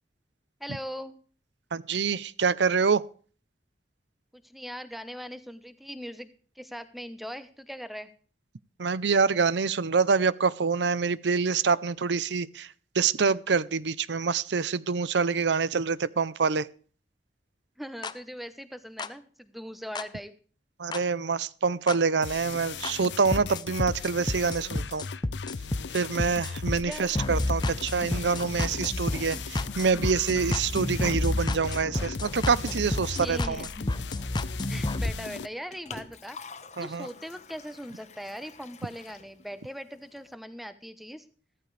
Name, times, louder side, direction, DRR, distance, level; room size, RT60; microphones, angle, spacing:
voice 1, 0.6-1.2 4.3-6.3 6.6-8.1 17.8-20.3 26.8-27.2 30.3-30.9 33.1-33.7 34.7-36.4 36.8-41.3, equal, ahead, 1.0 m, -40 dB
voice 2, 1.7-3.1 8.8-16.7 20.8-25.0 25.9-33.7 36.8-37.1, right 5 dB, 80° right, 0.6 m, -26 dB
sound 1, 18.0-18.1 19.0-19.1 20.0-20.1 20.9-21.0 21.9-22.0 22.8-22.9 23.3-35.1, left 2 dB, 25° left, 0.7 m, -31 dB
sound 2, 22.2-35.5, left 5 dB, 80° left, 0.6 m, -39 dB
Liquid, 35.3-40.4, left 4 dB, 40° left, 1.1 m, -48 dB
15.0 x 14.0 x 3.3 m
head